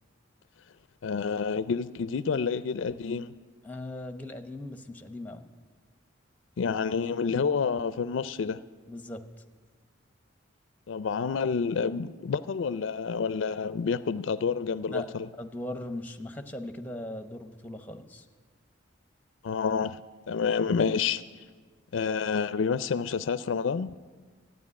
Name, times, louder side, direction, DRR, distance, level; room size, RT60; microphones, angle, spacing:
voice 1, 1.0-3.3 6.6-8.6 10.9-15.3 19.4-20.0 20.3-21.2 21.9-23.9, left 5 dB, 75° left, 0.4 m, -28 dB
voice 2, 3.6-5.5 8.9-9.2 14.9-15.1 15.4-18.3, left 1 dB, 10° left, 0.8 m, -39 dB
14.0 x 9.4 x 9.6 m
head